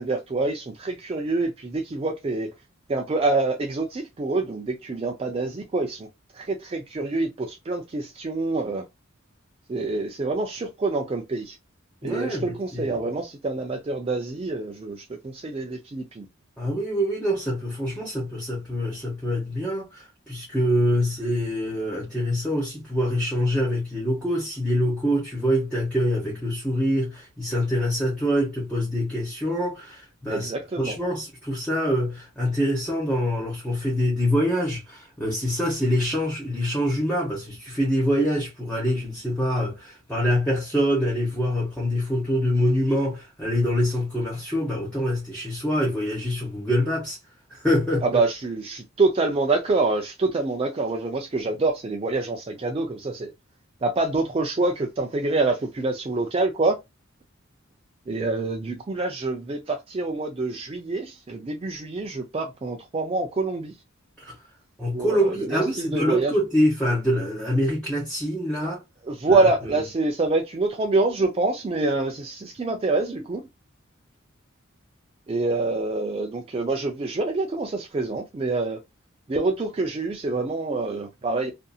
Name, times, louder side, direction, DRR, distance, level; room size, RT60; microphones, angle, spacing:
voice 1, 0.0-2.5 2.9-6.1 6.3-8.8 9.7-11.6 12.0-16.3 30.3-31.0 48.0-53.3 53.8-56.8 58.1-63.7 64.9-66.3 68.6-68.7 69.0-73.4 75.3-78.8 79.3-81.5, right 3 dB, 30° right, 0.4 m, -26 dB
voice 2, 12.0-13.0 16.6-30.5 30.8-47.2 47.5-48.0 64.3-64.4 64.8-68.8 69.3-69.5, equal, 5° left, 0.8 m, -25 dB
2.7 x 2.5 x 2.2 m
head